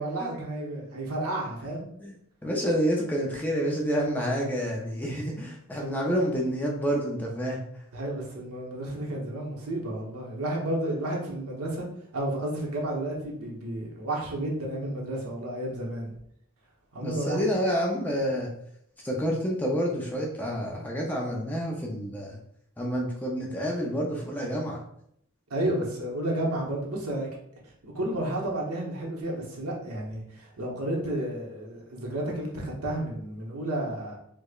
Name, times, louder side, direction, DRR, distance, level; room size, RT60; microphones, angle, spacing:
voice 1, 0.0-1.9 7.9-11.9 12.1-16.1 16.9-17.4 25.5-27.3 27.8-34.2, right 1 dB, 85° right, -2 dB, 0.9 m, -31 dB
voice 2, 2.4-7.6 17.0-18.5 19.0-22.4 22.8-24.8, equal, 10° left, -2 dB, 0.4 m, -28 dB
4.6 x 2.1 x 2.3 m, 0.72 s
head